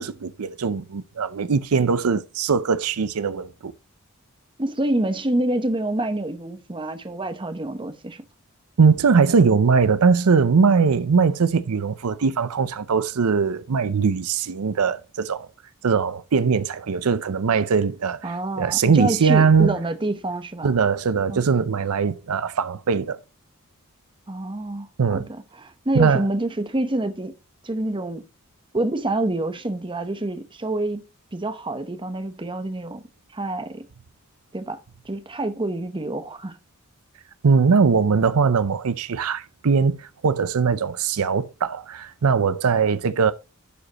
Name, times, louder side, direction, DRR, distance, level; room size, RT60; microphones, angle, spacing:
voice 1, 0.0-3.7 8.8-15.5 15.8-19.8 20.6-23.2 25.0-25.3 25.9-26.2 37.4-43.3, right 5 dB, 75° right, 0.5 m, -20 dB
voice 2, 4.6-8.2 18.2-20.7 21.3-21.5 24.3-27.3 27.6-28.2 28.7-31.0 31.3-33.0 33.3-33.9 34.5-34.8 35.0-36.5, right 1 dB, 20° right, 0.9 m, -27 dB
11.0 x 5.0 x 2.9 m
head